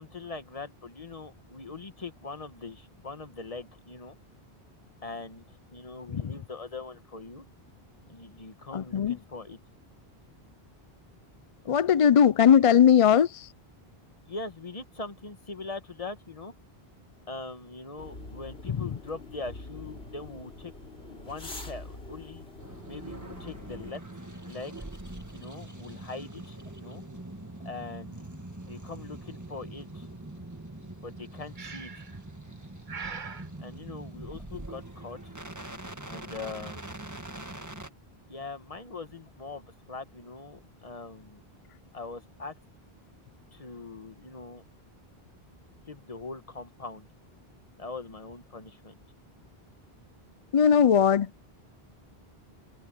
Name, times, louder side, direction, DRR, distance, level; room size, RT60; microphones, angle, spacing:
voice 1, 0.0-4.2 5.0-7.5 8.1-9.6 14.3-16.5 17.3-20.7 21.1-22.4 22.9-24.9 25.3-27.0 27.6-28.2 28.7-30.1 31.0-32.0 33.6-35.3 36.1-36.8 38.3-41.4 41.9-42.6 43.5-44.6 45.9-47.1 47.8-49.0, left 3 dB, 35° left, 1.3 m, -42 dB
voice 2, 8.7-9.2 11.7-13.5 50.5-51.3, left 8 dB, 50° left, 0.4 m, -19 dB
sound 1, 18.0-23.9, left 2 dB, 80° left, 4.1 m, -44 dB
sound 2, 22.6-37.9, right 2 dB, 15° right, 1.7 m, -43 dB
Breathing, 31.6-32.2 32.9-33.5, right 5 dB, 50° right, 1.2 m, -40 dB
omnidirectional pair, 1.0 m